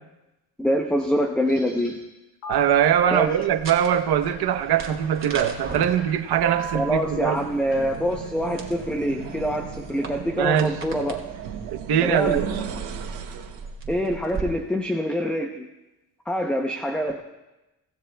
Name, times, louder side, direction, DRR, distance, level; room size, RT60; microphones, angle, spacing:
voice 1, 0.6-2.0 3.1-3.3 6.7-11.2 12.0-12.4 13.9-15.7 16.3-17.2, equal, 5° left, 3 dB, 0.7 m, -25 dB
sound 1, 1.5-2.0 2.4-2.5 3.1-9.4, left 3 dB, 85° left, 4.9 m, -46 dB
sound 2, 2.5-14.4, right 4 dB, 30° right, 2.1 m, -40 dB
voice 2, 2.5-7.4 10.4-10.7 11.7-12.4, right 9 dB, 65° right, 8 dB, 1.0 m, -22 dB
sound 3, 6.2-13.7, right 7 dB, 80° right, 1.9 m, -36 dB
24.5 x 16.0 x 2.3 m, 1.0 s
cardioid pair, 150°, 42 cm